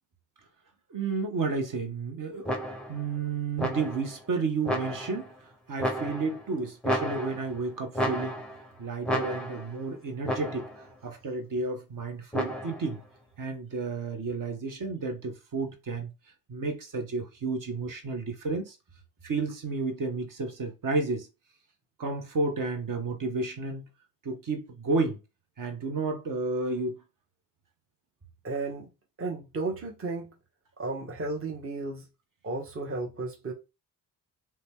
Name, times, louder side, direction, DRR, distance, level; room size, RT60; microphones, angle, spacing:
voice 1, 0.9-2.5 2.9-5.3 5.7-8.4 8.8-13.0 13.4-16.1 16.5-18.8 19.2-21.3 22.0-23.8 24.2-25.2 25.6-27.0, right 3 dB, 45° right, 1.0 m, -31 dB
sound 1, 2.5-3.0 3.6-4.2 4.7-5.3 5.8-6.5 6.8-7.6 7.9-8.7 9.1-9.8 10.3-10.8 12.3-12.9, equal, ahead, 0.6 m, -32 dB
voice 2, 28.4-28.9 29.2-30.4 30.8-32.1 32.4-33.5, right 3 dB, 30° right, 1.0 m, -34 dB
2.7 x 2.2 x 3.4 m
hypercardioid pair, 50°, 44 cm